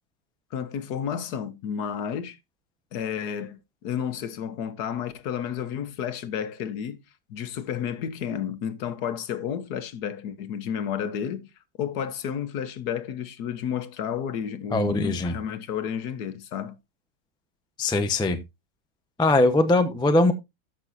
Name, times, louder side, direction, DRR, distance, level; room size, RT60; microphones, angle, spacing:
voice 1, 0.5-2.4 2.9-7.0 7.3-11.5 11.8-16.8, left 8 dB, 70° left, 1.4 m, -31 dB
voice 2, 14.7-15.3 17.8-18.4 19.2-20.3, left 2 dB, 5° left, 0.4 m, -21 dB
14.0 x 6.1 x 2.6 m
omnidirectional pair, 1.8 m